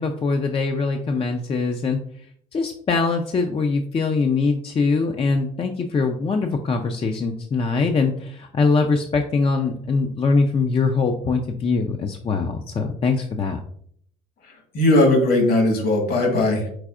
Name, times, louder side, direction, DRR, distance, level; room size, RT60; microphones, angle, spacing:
voice 1, 0.0-2.0 2.5-13.6, left 4 dB, 30° left, 4 dB, 0.5 m, -22 dB
voice 2, 14.4-16.7, left 2 dB, 55° left, 3 dB, 1.5 m, -19 dB
4.7 x 4.0 x 2.4 m, 0.65 s
hypercardioid pair, 65°, 18 cm